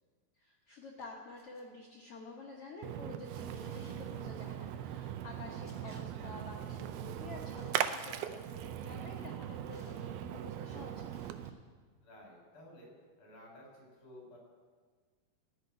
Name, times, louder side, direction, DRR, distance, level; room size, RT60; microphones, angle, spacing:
voice 1, 0.4-11.1, left 3 dB, 85° left, -2 dB, 1.3 m, -50 dB
sound 1, 1.4-1.6 3.5-4.0 5.6-6.0 7.5-8.1 9.7-10.1 11.1-11.5, left 1 dB, 5° left, 2.1 m, -62 dB
Splash splatter, 2.8-11.5, right 10 dB, 80° right, 2.4 m, -40 dB
voice 2, 12.0-14.4, left 1 dB, 35° left, -1 dB, 4.7 m, -54 dB
15.0 x 6.6 x 9.4 m, 1.5 s
omnidirectional pair, 4.6 m